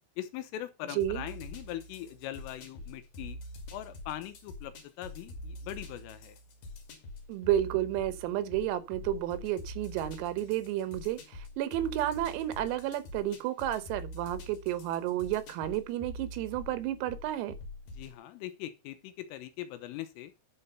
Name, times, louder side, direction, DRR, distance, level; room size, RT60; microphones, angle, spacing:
voice 1, 0.2-3.4 3.7-6.4 17.9-20.3, left 13 dB, 85° left, 3.5 m, -41 dB
sound 1, 1.0-18.2, left 1 dB, 50° left, 3.4 m, -45 dB
voice 2, 7.3-17.6, right 12 dB, 90° right, 3.8 m, -31 dB
10.5 x 5.7 x 5.5 m
omnidirectional pair, 5.9 m